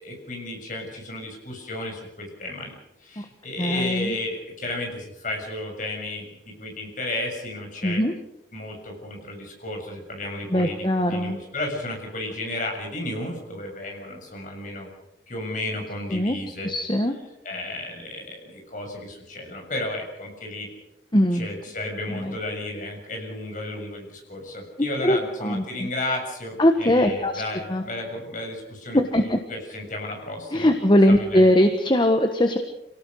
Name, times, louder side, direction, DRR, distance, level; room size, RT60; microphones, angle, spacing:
voice 1, 0.0-8.0 8.5-14.9 15.3-16.7 17.4-20.7 21.3-30.7 31.1-31.5, left 2 dB, 45° left, 2 dB, 7.0 m, -33 dB
voice 2, 3.6-4.2 7.8-8.1 10.5-11.4 16.1-17.2 21.1-21.5 22.1-22.3 24.8-25.9 26.6-27.4 27.7-27.8 28.9-29.4 30.5-32.6, left 1 dB, 25° left, 6 dB, 1.4 m, -21 dB
27.5 x 18.0 x 6.5 m, 0.90 s
head